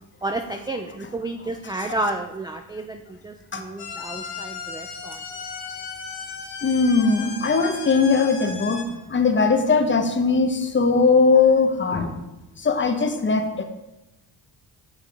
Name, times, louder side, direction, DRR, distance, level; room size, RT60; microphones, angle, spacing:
voice 1, 0.2-5.2, right 2 dB, 10° right, 5 dB, 0.3 m, -31 dB
sound 1, 3.8-8.8, left 5 dB, 65° left, 1.5 m, -35 dB
voice 2, 6.6-8.8 9.1-12.2 12.6-13.6, left 4 dB, 25° left, 6 dB, 0.8 m, -20 dB
7.1 x 5.7 x 3.4 m, 0.98 s
cardioid pair, 90°, 42 cm